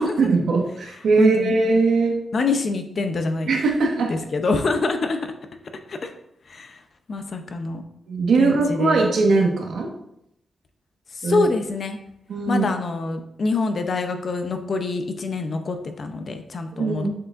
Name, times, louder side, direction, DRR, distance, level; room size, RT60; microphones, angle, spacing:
voice 1, 0.0-2.2 3.5-4.1 8.1-9.9 11.2-11.4 12.3-12.6 16.7-17.1, right 3 dB, 80° right, 1 dB, 1.5 m, -20 dB
voice 2, 1.2-1.6 2.3-3.6 4.1-5.2 5.9-6.1 6.5-6.8 7.1-7.8 8.4-9.0 11.1-12.0 12.5-17.1, left 3 dB, 45° left, 6 dB, 0.7 m, -25 dB
7.5 x 6.9 x 2.6 m, 0.78 s
wide cardioid pair, 160°, 0 cm